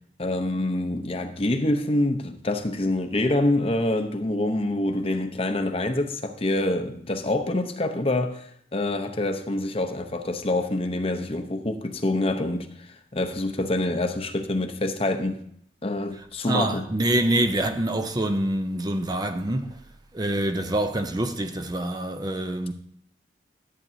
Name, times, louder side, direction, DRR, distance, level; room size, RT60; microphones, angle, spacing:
voice 1, 0.2-15.4 15.8-16.8, left 1 dB, 30° left, 0.7 m, -26 dB
voice 2, 16.1-19.8 20.1-22.7, right 1 dB, 20° right, 0.5 m, -26 dB
13.5 x 8.6 x 2.7 m
head